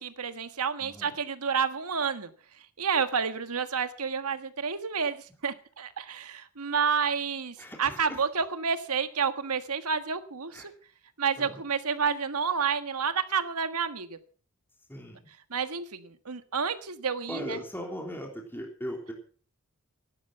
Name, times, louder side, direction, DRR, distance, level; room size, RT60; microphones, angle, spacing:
voice 1, 0.0-2.3 2.8-10.7 11.2-14.2 15.5-17.6, right 6 dB, 85° right, 10 dB, 1.5 m, -30 dB
voice 2, 0.8-1.1 7.6-8.2 10.5-10.7 11.4-11.6 14.9-15.2 17.3-19.1, equal, 10° left, 1 dB, 3.5 m, -38 dB
17.0 x 11.5 x 5.8 m, 0.42 s
head